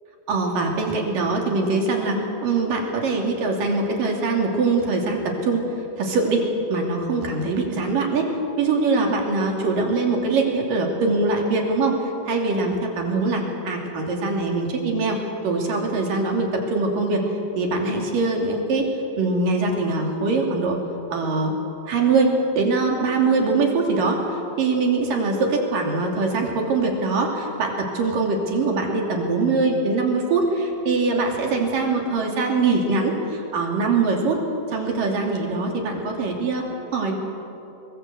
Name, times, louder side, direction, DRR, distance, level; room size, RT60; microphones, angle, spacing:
voice 1, 0.3-5.6 6.0-6.4 6.7-8.3 8.6-15.2 15.4-17.3 17.6-18.9 19.2-20.8 21.1-21.5 21.9-24.2 24.6-34.4 34.7-36.6 36.9-37.2, right 3 dB, 50° right, 1 dB, 4.0 m, -22 dB
26.0 x 22.0 x 8.0 m, 2.8 s
omnidirectional pair, 5.7 m